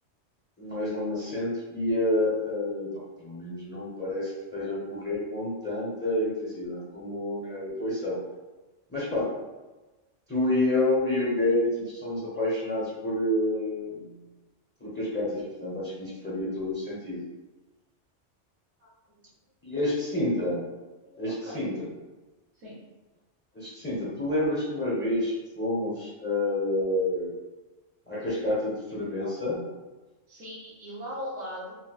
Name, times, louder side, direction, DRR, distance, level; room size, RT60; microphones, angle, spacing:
voice 1, 0.6-2.9 3.2-8.2 8.9-9.3 10.3-14.1 14.8-17.2 19.6-20.6 21.2-21.9 23.5-27.3 28.1-29.6, left 1 dB, 10° left, -7 dB, 0.6 m, -29 dB
voice 2, 21.0-21.6 22.6-22.8 30.3-31.8, equal, 75° right, -8 dB, 1.1 m, -39 dB
3.9 x 2.0 x 2.4 m, 1.2 s
omnidirectional pair, 1.2 m